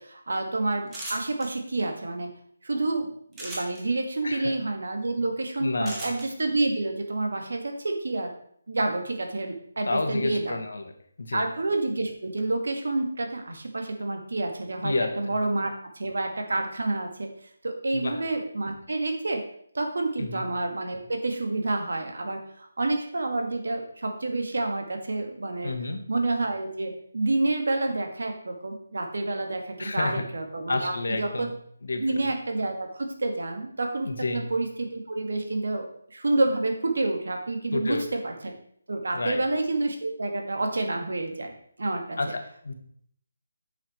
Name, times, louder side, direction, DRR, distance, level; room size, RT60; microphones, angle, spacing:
voice 1, 0.0-2.3 2.6-8.3 8.7-10.6 11.3-17.3 17.6-19.4 19.7-25.7 26.1-31.5 32.0-38.3 38.9-41.5 41.8-42.3, right 2 dB, 75° right, 4 dB, 1.9 m, -29 dB
sound 1, 0.9-1.5 3.3-3.8 5.8-6.3, right 1 dB, 10° right, 1.8 m, -36 dB
voice 2, 4.2-4.5 5.6-6.1 9.9-10.9 11.2-11.5 14.8-15.4 17.9-18.2 20.2-20.4 25.6-26.0 29.8-30.2 30.7-31.5 31.8-32.2 34.0-34.5 37.7-38.0 39.1-39.4 42.2-42.7, left 3 dB, 70° left, 5 dB, 1.5 m, -30 dB
8.5 x 6.0 x 4.5 m, 0.65 s
figure-of-eight pair, 165°, 0 cm